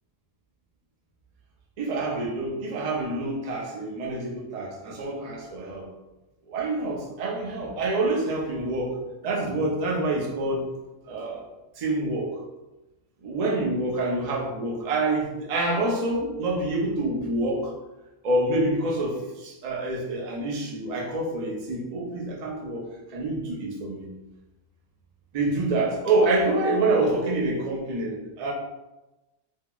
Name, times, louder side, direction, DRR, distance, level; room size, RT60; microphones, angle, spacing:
voice 1, 1.8-5.9 6.5-8.9 9.2-10.7 11.1-11.4 11.8-12.4 13.2-17.7 18.2-24.1 25.3-28.5, right 2 dB, 90° right, -2 dB, 0.3 m, -27 dB
3.4 x 2.0 x 2.3 m, 1.0 s
omnidirectional pair, 1.4 m